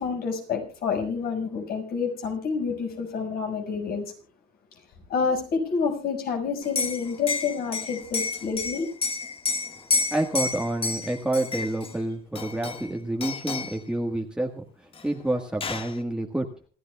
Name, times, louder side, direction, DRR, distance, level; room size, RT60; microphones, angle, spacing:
voice 1, 0.0-4.1 5.1-8.9, left 5 dB, 65° left, 3 dB, 5.9 m, -28 dB
Liquid, 6.6-11.9 12.4-12.9 13.2-13.8 15.0-15.1 15.3-15.9, left 4 dB, 35° left, 1.7 m, -30 dB
voice 2, 10.1-16.5, right 1 dB, 5° right, 1 dB, 1.6 m, -28 dB
27.5 x 13.0 x 2.3 m, 0.39 s
cardioid pair, 110°, 17 cm